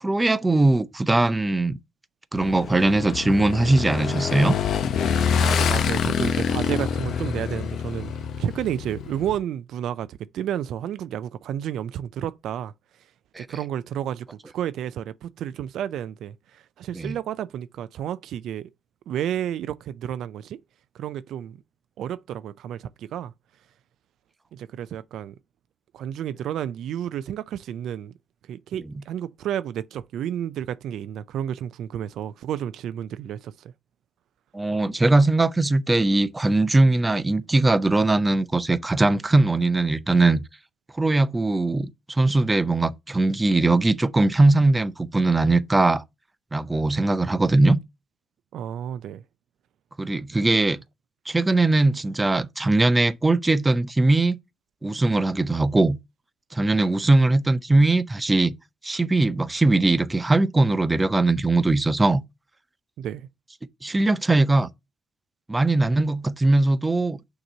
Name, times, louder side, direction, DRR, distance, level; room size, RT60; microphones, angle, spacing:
voice 1, 0.0-1.8 2.3-4.6 13.3-13.6 16.9-17.1 34.5-40.4 40.9-46.0 46.5-47.8 50.0-50.8 51.3-54.4 54.8-56.0 56.5-58.5 58.8-62.2 63.8-64.7 65.5-67.2, right 2 dB, 15° right, 0.5 m, -20 dB
Motorcycle / Engine, 2.3-9.4, left 7 dB, 70° left, 0.6 m, -26 dB
voice 2, 5.3-8.1 8.4-12.7 13.4-18.7 19.1-20.6 20.9-21.6 22.0-23.3 24.5-25.4 25.9-28.1 28.5-33.7 48.5-49.2 63.0-63.3, right 10 dB, 75° right, 0.3 m, -31 dB
6.5 x 2.9 x 5.4 m
cardioid pair, 90°, 0 cm